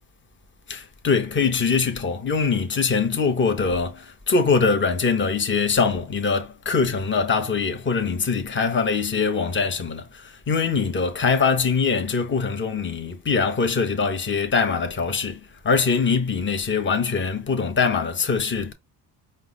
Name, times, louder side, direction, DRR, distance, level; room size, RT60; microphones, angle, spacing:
voice 1, 0.7-18.7, left 5 dB, 25° left, 0.9 m, -23 dB
4.6 x 2.1 x 3.9 m
cardioid pair, 90°, 46 cm